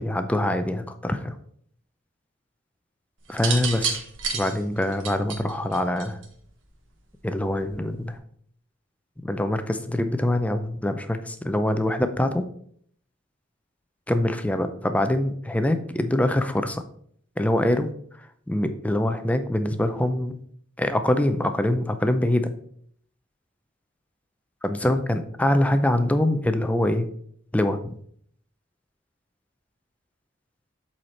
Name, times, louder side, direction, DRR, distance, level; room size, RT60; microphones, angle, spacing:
voice 1, 0.0-1.4 3.3-4.0 4.3-6.2 7.2-8.2 9.2-12.5 14.1-16.8 17.4-17.9 18.2-20.4 20.8-22.5 24.6-27.1 27.5-27.9, left 1 dB, 5° left, 9 dB, 0.5 m, -24 dB
sound 1, 3.3-6.4 7.5-7.9, right 6 dB, 80° right, 1.3 m, -30 dB
7.8 x 4.3 x 4.4 m, 0.64 s
head